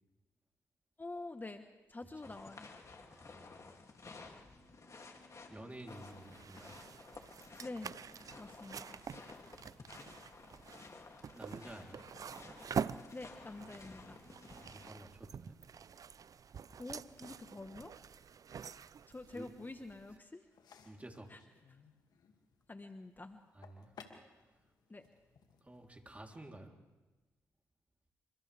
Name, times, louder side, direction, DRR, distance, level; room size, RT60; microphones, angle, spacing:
voice 1, 1.0-2.7 7.6-7.9 8.4-9.0 13.1-14.2 16.8-17.9 19.1-20.4 21.3-21.4 22.7-23.4 24.9-25.0, left 2 dB, 25° left, 7 dB, 1.3 m, -47 dB
sound 1, 2.2-14.9, left 3 dB, 45° left, 2.8 m, -54 dB
voice 2, 3.1-3.7 5.5-6.8 11.3-12.1 14.6-15.6 19.3-19.5 20.8-21.3 23.5-23.9 24.4-24.6 25.6-26.7, right 1 dB, 20° right, 1 dB, 3.5 m, -51 dB
sound 2, 5.9-20.2, right 7 dB, 55° right, 0.6 m, -46 dB
sound 3, 20.5-26.4, left 6 dB, 65° left, 2.4 m, -61 dB
29.0 x 26.0 x 3.5 m, 1.2 s
hypercardioid pair, 45°, 7 cm